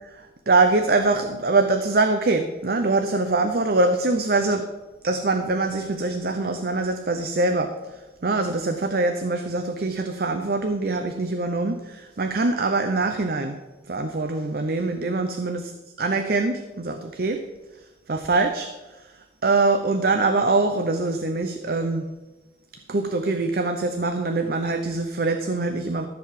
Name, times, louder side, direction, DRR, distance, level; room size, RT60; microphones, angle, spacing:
voice 1, 0.1-4.7 5.0-7.7 8.2-13.6 13.9-15.7 16.0-17.4 18.1-18.7 19.4-22.1 22.9-26.1, right 3 dB, 50° right, 7 dB, 0.7 m, -23 dB
14.0 x 4.7 x 7.5 m, 1.1 s
head